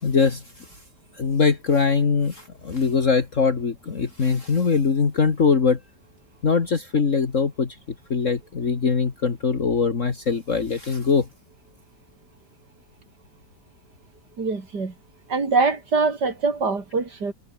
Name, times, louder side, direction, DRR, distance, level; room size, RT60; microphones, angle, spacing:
voice 1, 0.0-0.7 1.2-5.8 6.4-7.8 8.1-11.3, left 5 dB, 50° left, 2.2 m, -22 dB
voice 2, 14.4-14.9 15.3-17.3, right 4 dB, 80° right, 4.1 m, -23 dB
omnidirectional pair, 1.8 m